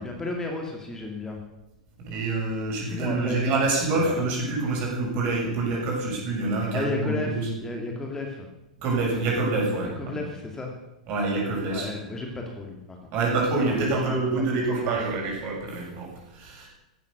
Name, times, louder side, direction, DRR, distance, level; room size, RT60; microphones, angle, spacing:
voice 1, 0.0-1.4 2.9-4.2 6.7-8.5 9.8-10.8 11.7-13.1 13.6-15.0, left 2 dB, 15° left, 1 dB, 2.5 m, -34 dB
voice 2, 2.1-7.5 8.8-10.2 11.1-11.9 13.1-16.7, right 3 dB, 40° right, -1 dB, 7.0 m, -26 dB
15.5 x 12.0 x 6.7 m, 0.96 s
figure-of-eight pair, 90°, 4 cm